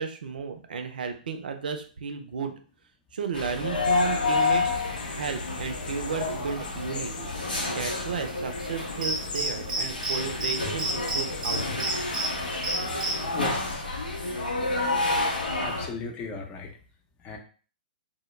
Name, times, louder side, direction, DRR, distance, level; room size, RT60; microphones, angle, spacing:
voice 1, 0.0-2.5 3.1-4.9 5.1-7.3 7.7-11.6, right 6 dB, 75° right, 6 dB, 0.5 m, -33 dB
sound 1, 3.3-15.9, left 3 dB, 90° left, 0.8 m, -29 dB
sound 2, 3.7-13.8, left 4 dB, 70° left, 0.4 m, -41 dB
Cricket, 9.0-10.2 10.4-10.5 10.8-12.3 12.6-13.1, right 2 dB, 15° right, 0.7 m, -28 dB
voice 2, 13.3-13.8 15.6-16.7 17.2-17.4, left 3 dB, 25° left, 2 dB, 0.6 m, -36 dB
2.1 x 2.1 x 3.0 m, 0.40 s
hypercardioid pair, 120°, 5 cm